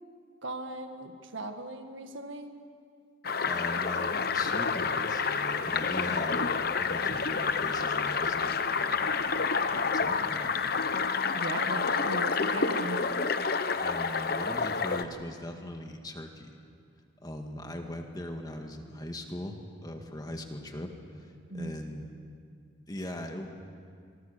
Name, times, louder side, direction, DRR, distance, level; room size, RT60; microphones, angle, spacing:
voice 1, 0.4-2.5 11.3-13.0 21.5-21.7, right 2 dB, 75° right, 6 dB, 1.8 m, -38 dB
sound 1, 3.2-15.0, left 5 dB, 50° left, 0.9 m, -29 dB
voice 2, 3.5-6.5 6.8-9.0 9.7-10.5 13.8-16.6 17.2-20.9 21.2-22.1 22.9-23.5, left 1 dB, 20° left, 4 dB, 1.9 m, -40 dB
27.0 x 23.5 x 6.8 m, 2.2 s
head